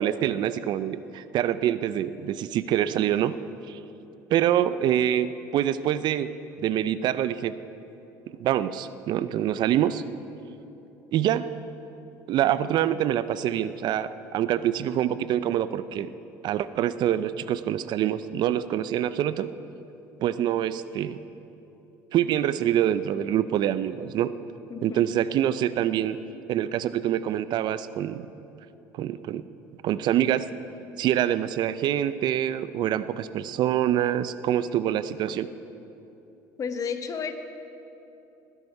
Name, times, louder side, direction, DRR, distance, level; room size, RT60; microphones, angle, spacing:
voice 1, 0.0-3.3 3.7-3.8 4.3-6.3 6.6-7.6 8.3-10.0 11.1-11.4 12.3-16.1 16.4-19.5 20.2-21.2 22.1-24.3 24.8-26.2 26.5-28.3 29.0-29.4 29.8-30.5 31.0-35.5, right 11 dB, 60° right, 14 dB, 0.6 m, -25 dB
voice 2, 24.7-25.1 36.6-37.3, left 6 dB, 40° left, 8 dB, 1.3 m, -32 dB
19.5 x 11.0 x 4.7 m, 3.0 s
supercardioid pair, 80°, 9 cm